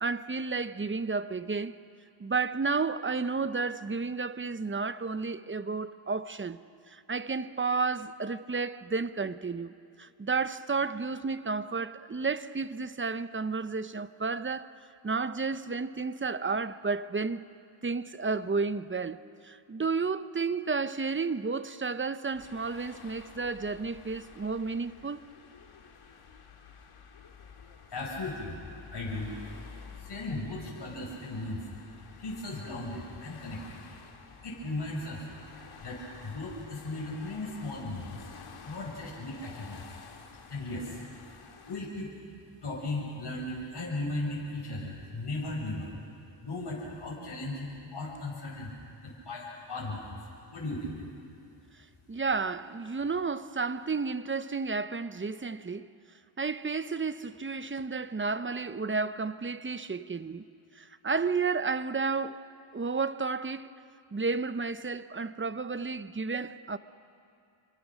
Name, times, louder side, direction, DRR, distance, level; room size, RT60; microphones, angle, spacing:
voice 1, 0.0-1.8 2.2-6.6 6.9-14.7 15.0-17.4 17.8-25.2 52.1-55.9 56.4-60.4 60.8-62.5 62.7-63.7 64.1-66.8, right 4 dB, 25° right, 0.8 m, -32 dB
sound 1, 22.3-41.8, left 5 dB, 80° left, 2.4 m, -51 dB
voice 2, 27.9-28.5 28.9-29.3 30.0-31.6 31.9-33.8 34.4-35.2 35.8-38.1 38.6-39.9 40.5-41.0 41.6-42.1 42.6-45.9 46.4-48.7 49.0-50.1 50.5-51.0, left 2 dB, 55° left, 6.8 m, -36 dB
29.5 x 24.5 x 6.3 m
cardioid pair, 75°, 49 cm